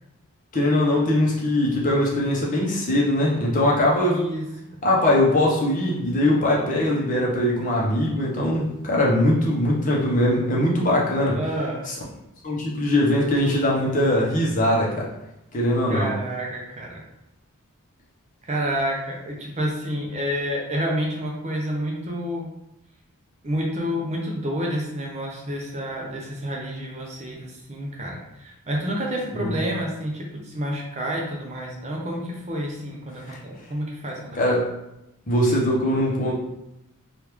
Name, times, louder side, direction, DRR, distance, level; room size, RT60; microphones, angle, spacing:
voice 1, 0.5-4.2 4.8-11.4 11.9-12.0 12.4-15.1 15.5-16.1 29.4-29.6 33.3-33.4 34.3-34.7 35.3-36.3, left 1 dB, 35° left, -4 dB, 0.7 m, -21 dB
voice 2, 4.1-4.8 11.3-11.9 15.9-17.0 18.4-22.5 23.4-34.4, equal, 30° right, -1 dB, 0.5 m, -29 dB
3.0 x 2.4 x 3.3 m, 0.89 s
head